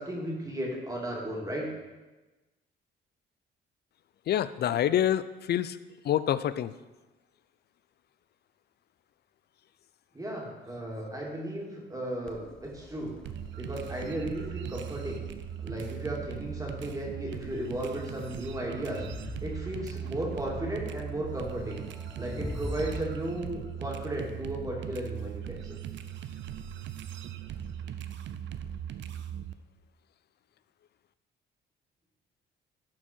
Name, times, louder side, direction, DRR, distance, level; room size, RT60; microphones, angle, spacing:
voice 1, 0.0-1.7 10.1-13.2 13.6-15.3 15.6-21.9 22.2-25.8, right 1 dB, 15° right, -2 dB, 2.3 m, -35 dB
voice 2, 4.3-5.8 6.0-6.7, left 11 dB, 55° left, 15 dB, 0.4 m, -26 dB
Crowd, 12.3-23.0, left 1 dB, 5° left, 0.7 m, -44 dB
sound 1, 13.2-29.5, right 9 dB, 70° right, 0.6 m, -39 dB
11.5 x 4.5 x 4.4 m, 1.2 s
cardioid pair, 90°, 20 cm